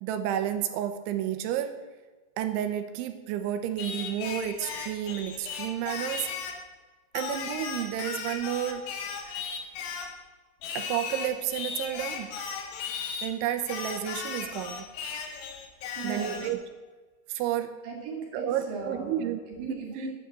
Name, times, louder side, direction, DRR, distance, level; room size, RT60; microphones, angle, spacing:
voice 1, 0.0-1.8 2.4-6.3 7.1-8.9 10.7-12.4 13.2-14.9 16.0-16.6 17.3-17.8 18.3-19.4, right 11 dB, 80° right, 8 dB, 3.0 m, -31 dB
Singing, 3.8-6.6 7.2-10.2 10.6-13.3 13.7-16.6, left 6 dB, 85° left, 4.2 m, -36 dB
voice 2, 16.0-16.5 17.8-19.2 19.5-20.1, right 4 dB, 45° right, -1 dB, 4.1 m, -36 dB
12.0 x 9.9 x 8.0 m, 1.3 s
omnidirectional pair, 5.9 m